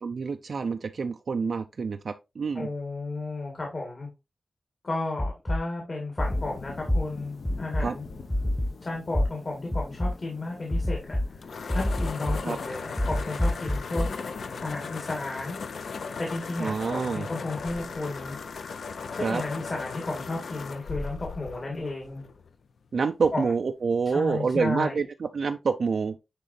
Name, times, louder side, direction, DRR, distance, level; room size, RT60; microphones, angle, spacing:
voice 1, 0.0-2.7 7.8-7.9 12.4-12.6 16.6-17.3 19.2-19.4 22.9-26.2, right 5 dB, 65° right, 0.4 m, -27 dB
voice 2, 2.5-4.1 4.8-8.1 8.8-11.4 11.7-14.1 14.6-15.6 16.2-18.4 19.1-22.2 23.3-23.5 24.1-25.0, left 2 dB, 40° left, 1.9 m, -33 dB
sound 1, 5.2-5.6 6.2-6.4 6.9-7.0 7.4-7.8 8.3-8.7 9.1-9.2 9.7-10.1 10.7-11.2 11.7-12.4 13.0-14.1, left 1 dB, 5° left, 0.5 m, -25 dB
sound 2, 6.2-14.9, left 4 dB, 65° left, 1.0 m, -45 dB
sound 3, 10.7-22.5, left 5 dB, 85° left, 0.6 m, -37 dB
10.0 x 3.7 x 2.6 m
wide cardioid pair, 150°, 0 cm